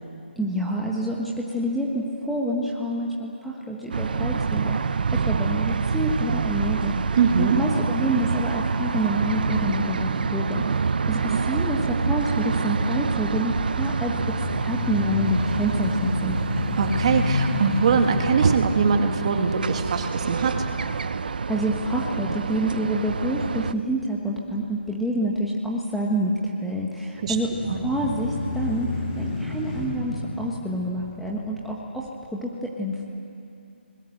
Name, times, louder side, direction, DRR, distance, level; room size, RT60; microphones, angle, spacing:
voice 1, 0.4-7.0 7.4-14.1 14.5-16.4 21.5-27.5 27.8-33.2, equal, ahead, -5 dB, 1.2 m, -27 dB
sound 1, 3.9-23.7, right 5 dB, 50° right, 0.7 m, -27 dB
voice 2, 7.2-7.6 11.3-11.4 16.8-20.7 27.2-27.4 27.7-27.8, right 5 dB, 35° right, 5 dB, 2.0 m, -22 dB
sound 2, 13.9-22.0 22.5-22.6 27.1-31.6, left 2 dB, 25° left, 6.0 m, -31 dB
28.5 x 21.0 x 7.8 m, 2.5 s
hypercardioid pair, 165°, 6 cm